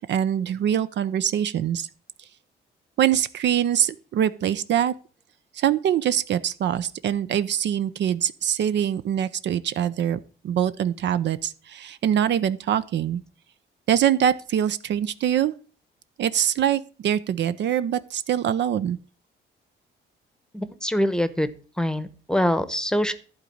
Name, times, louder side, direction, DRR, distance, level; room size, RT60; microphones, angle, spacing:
voice 1, 0.0-1.9 3.0-4.9 5.5-10.2 10.4-13.2 13.9-15.5 16.2-19.0, right 10 dB, 65° right, 0.6 m, -24 dB
voice 2, 20.5-21.5 21.8-23.1, equal, 5° left, 0.9 m, -24 dB
11.5 x 4.0 x 7.7 m
cardioid pair, 90°, 20 cm